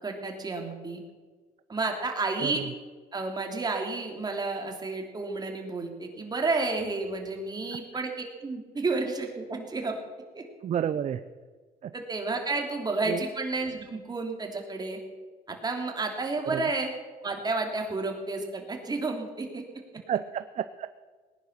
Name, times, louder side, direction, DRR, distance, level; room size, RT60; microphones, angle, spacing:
voice 1, 0.0-1.0 1.7-2.6 3.1-10.0 10.3-10.4 11.9-15.0 15.5-16.9 17.2-19.6, right 3 dB, 25° right, 2 dB, 3.1 m, -31 dB
voice 2, 2.4-2.7 10.6-11.2 11.8-11.9 13.0-13.3 16.4-16.7 20.1-20.9, right 9 dB, 45° right, 12 dB, 0.6 m, -30 dB
19.0 x 10.5 x 6.7 m, 1.4 s
cardioid pair, 110°, 17 cm